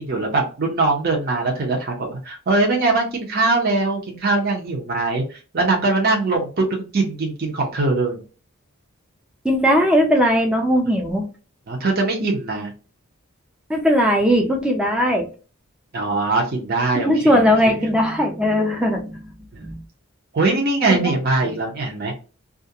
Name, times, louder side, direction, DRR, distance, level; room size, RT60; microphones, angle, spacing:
voice 1, 0.0-8.2 11.7-12.7 15.9-17.8 19.5-19.7 20.3-22.1, right 3 dB, 45° right, 0 dB, 0.6 m, -22 dB
voice 2, 9.4-11.3 13.7-15.3 17.0-19.3 19.6-19.8 20.9-21.1, equal, 5° right, 1 dB, 0.5 m, -18 dB
2.4 x 2.1 x 2.7 m, 0.35 s
head